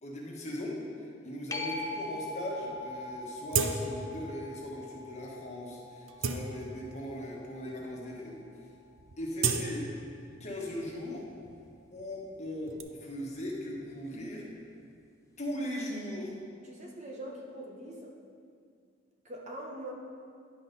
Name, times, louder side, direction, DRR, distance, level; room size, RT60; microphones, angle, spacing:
voice 1, 0.0-8.4 9.2-9.9 10.4-11.3 11.9-14.5 15.4-16.3, left 1 dB, 35° left, -3 dB, 1.4 m, -39 dB
sound 1, 1.5-8.7 14.2-14.3, left 2 dB, 15° left, 0.5 m, -42 dB
sound 2, 2.4-2.5 2.8-2.9 3.5-4.2 4.6-4.7 5.4-5.5 5.9-7.1 7.7-7.8 8.1-8.5 8.7-10.6 10.9-12.8, right 5 dB, 75° right, 0.5 m, -34 dB
voice 2, 16.6-18.1 19.2-19.9, right 1 dB, 35° right, -1 dB, 0.9 m, -43 dB
10.5 x 4.1 x 5.3 m, 2.3 s
head